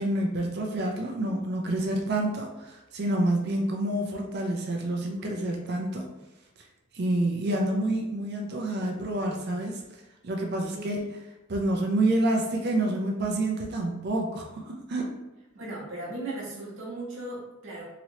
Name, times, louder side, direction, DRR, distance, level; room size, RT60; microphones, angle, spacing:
voice 1, 0.0-6.0 6.6-6.7 6.9-11.0 11.5-15.1, right 1 dB, 55° right, 2 dB, 0.5 m, -28 dB
voice 2, 10.7-11.0 15.5-17.8, right 2 dB, 75° right, -5 dB, 1.0 m, -37 dB
3.0 x 2.9 x 2.7 m, 1.0 s
head